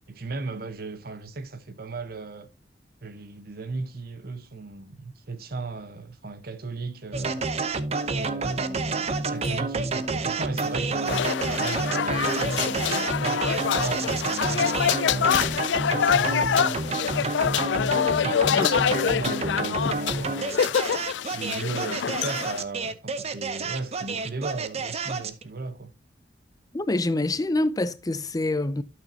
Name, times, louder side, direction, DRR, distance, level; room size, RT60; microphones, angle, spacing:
voice 1, 0.1-2.5 3.0-7.4 8.2-15.4 15.8-20.8 21.3-25.9, right 3 dB, 60° right, 1.0 m, -36 dB
sound 1, 7.1-25.4, right 3 dB, 35° right, 0.8 m, -29 dB
sound 2, 9.2-16.7, left 6 dB, 50° left, 0.9 m, -44 dB
sound 3, 11.0-22.6, left 7 dB, 85° left, 0.4 m, -25 dB
voice 2, 26.7-28.8, left 2 dB, 20° left, 0.5 m, -26 dB
11.5 x 6.4 x 2.8 m
head